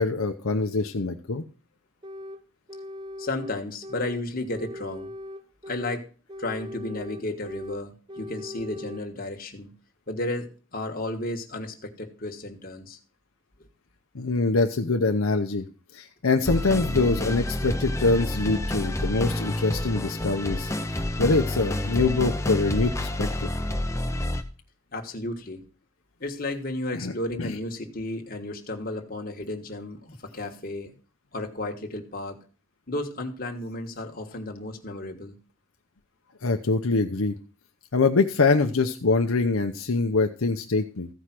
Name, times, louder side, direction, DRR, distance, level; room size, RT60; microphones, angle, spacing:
voice 1, 0.0-1.4 14.1-15.7 15.9-23.5 26.9-27.1 27.4-27.5 36.4-37.4 37.9-41.1, left 3 dB, 75° left, 5 dB, 0.8 m, -24 dB
sound 1, 2.0-2.4 2.7-4.2 4.5-6.0 6.3-7.8 8.1-9.0, left 1 dB, 20° right, 0.6 m, -39 dB
voice 2, 3.2-5.1 5.7-6.0 6.4-9.7 10.1-13.0 13.6-13.7 24.9-25.6 26.2-30.9 31.3-32.4 32.9-35.3, left 2 dB, 40° left, 3 dB, 1.4 m, -33 dB
sound 2, 16.5-24.4, left 1 dB, 15° left, 0.7 m, -29 dB
14.5 x 4.9 x 5.9 m, 0.38 s
head